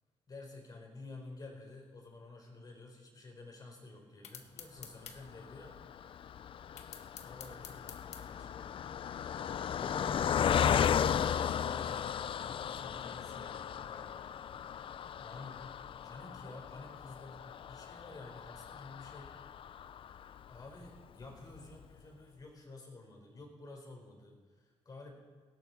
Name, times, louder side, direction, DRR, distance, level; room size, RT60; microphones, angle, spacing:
voice 1, 0.3-5.8 7.2-8.8 9.7-11.8 12.4-14.1 15.2-15.6 16.0-19.3 20.5-25.1, left 2 dB, 35° left, 2 dB, 4.4 m, -51 dB
sound 1, 4.2-5.2 6.8-8.2, left 7 dB, 70° left, 1.7 m, -48 dB
Car passing by, 5.2-20.7 21.2-21.3 21.6-21.7, left 8 dB, 50° left, 0.5 m, -36 dB
18.0 x 17.5 x 4.6 m, 1.4 s
cardioid pair, 125°, 12 cm